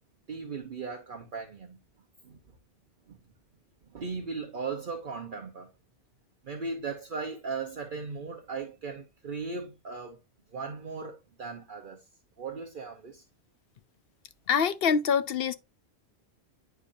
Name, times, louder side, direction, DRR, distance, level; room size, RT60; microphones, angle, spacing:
voice 1, 0.3-1.8 2.2-2.4 3.1-3.2 3.9-5.7 6.4-10.2 10.5-12.0 12.4-13.2, right 4 dB, 50° right, 1.0 m, -37 dB
voice 2, 14.5-15.5, left 6 dB, 65° left, 0.8 m, -25 dB
9.8 x 4.6 x 2.6 m
omnidirectional pair, 1.1 m